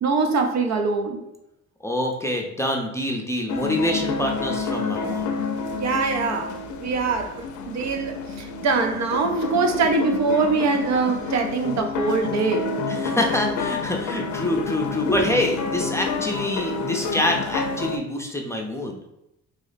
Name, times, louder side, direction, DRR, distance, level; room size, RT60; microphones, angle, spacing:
voice 1, 0.0-1.2 5.8-12.7, right 4 dB, 65° right, 4 dB, 0.6 m, -23 dB
voice 2, 1.8-5.3 12.9-19.0, left 1 dB, 10° left, 1 dB, 0.5 m, -26 dB
sound 1, 3.5-18.0, left 4 dB, 75° left, 0.5 m, -29 dB
2.9 x 2.0 x 4.0 m, 0.86 s
cardioid pair, 90°, 30 cm